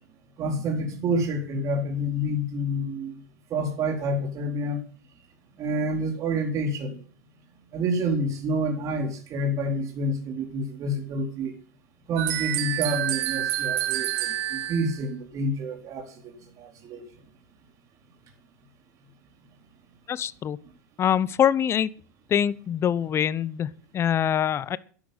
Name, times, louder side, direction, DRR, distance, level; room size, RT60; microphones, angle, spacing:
voice 1, 0.4-3.2 3.5-4.8 5.6-7.0 7.7-11.5 12.1-16.3 16.6-17.1, right 1 dB, 35° right, 3 dB, 4.2 m, -28 dB
sound 1, 12.2-15.0, right 12 dB, 55° right, 1.7 m, -28 dB
voice 2, 20.1-20.6 21.0-21.9 22.3-24.8, left 9 dB, 30° left, 19 dB, 1.0 m, -24 dB
11.5 x 10.5 x 7.4 m, 0.43 s
hypercardioid pair, 105°, 9 cm